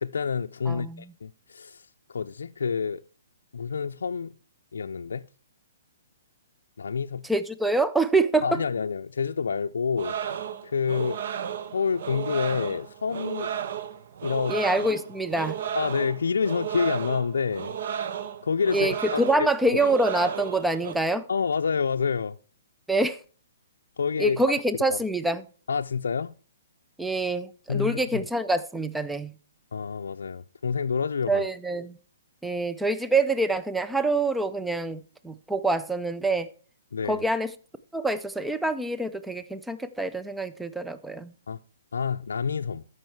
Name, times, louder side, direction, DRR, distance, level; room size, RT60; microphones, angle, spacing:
voice 1, 0.0-3.0 3.5-4.3 4.7-5.2 6.8-7.3 8.4-11.2 11.7-13.5 14.2-14.6 15.8-17.8 18.4-19.8 21.3-22.4 24.0-24.4 24.9-25.0 25.7-26.3 27.7-28.2 29.7-31.5 36.9-37.2 41.5-41.6 41.9-42.8, left 6 dB, 90° left, 0.4 m, -28 dB
voice 2, 0.7-1.1 7.2-8.6 14.5-15.6 18.7-21.3 22.9-23.2 24.2-25.4 27.0-29.3 31.3-32.0 32.4-36.5 37.1-37.5 37.9-41.3, right 2 dB, 5° right, 0.4 m, -26 dB
sound 1, 10.0-20.9, right 9 dB, 55° right, 0.8 m, -34 dB
13.5 x 5.5 x 4.6 m
hypercardioid pair, 160°, 0 cm